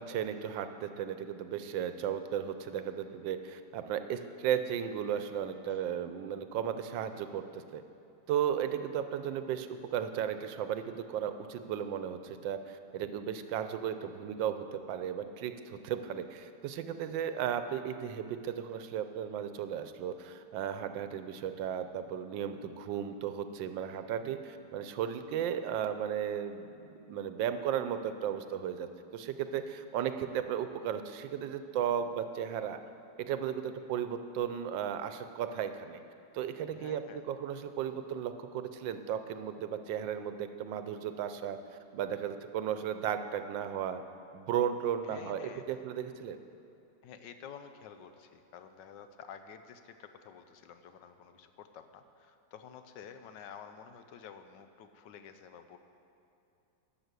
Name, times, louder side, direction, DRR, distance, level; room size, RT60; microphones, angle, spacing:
voice 1, 0.0-7.8 8.3-32.8 33.2-36.0 36.3-41.6 41.9-44.0 44.3-46.4, right 9 dB, 90° right, 9 dB, 1.4 m, -35 dB
voice 2, 36.7-37.2 45.1-45.9 47.0-55.8, left 7 dB, 80° left, 8 dB, 1.3 m, -51 dB
12.0 x 6.4 x 8.1 m, 2.7 s
omnidirectional pair, 2.0 m